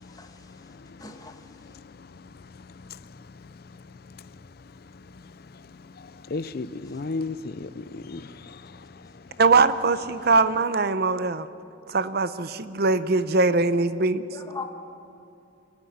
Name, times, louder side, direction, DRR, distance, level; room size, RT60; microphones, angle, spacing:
voice 1, 0.1-0.5 1.0-1.5 14.3-14.6, left 4 dB, 20° left, 1.3 m, -39 dB
voice 2, 6.3-8.8, left 3 dB, 50° left, 0.5 m, -34 dB
voice 3, 9.4-11.5 11.9-14.2, right 3 dB, 50° right, 0.7 m, -21 dB
27.0 x 11.5 x 9.9 m
head